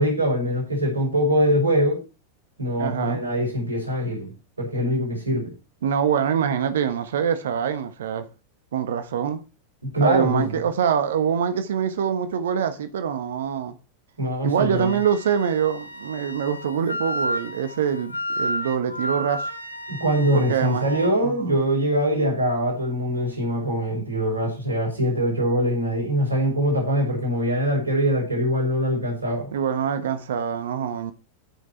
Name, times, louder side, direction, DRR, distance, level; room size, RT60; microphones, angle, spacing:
voice 1, 0.0-2.0 2.6-5.5 9.9-10.6 14.2-14.9 19.9-29.5, equal, 80° right, 6.0 m, -23 dB
voice 2, 2.8-3.2 5.8-8.3 8.7-9.4 10.0-13.7 14.4-19.5 20.3-20.9 21.2-21.5 29.5-31.1, right 8 dB, 65° right, 1.3 m, -24 dB
Wind instrument woodwind instrument, 14.8-21.2, equal, 85° left, 1.4 m, -32 dB
14.0 x 6.2 x 4.5 m
figure-of-eight pair, 90°, 0 cm